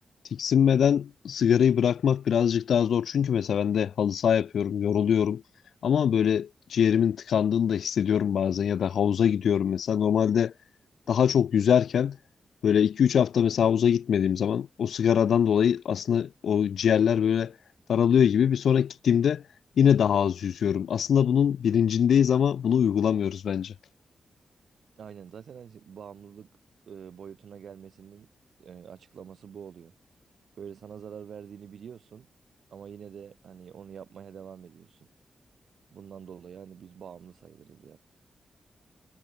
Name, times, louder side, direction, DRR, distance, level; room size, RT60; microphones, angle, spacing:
voice 1, 0.3-5.4 5.8-10.5 11.1-12.2 12.6-17.5 17.9-19.4 19.8-23.7, left 8 dB, 90° left, 0.9 m, -23 dB
voice 2, 25.0-26.5 26.9-28.3 28.6-29.9 30.6-32.3 32.7-35.1 35.9-38.0, right 7 dB, 80° right, 5.2 m, -45 dB
wide cardioid pair, 110°, 0 cm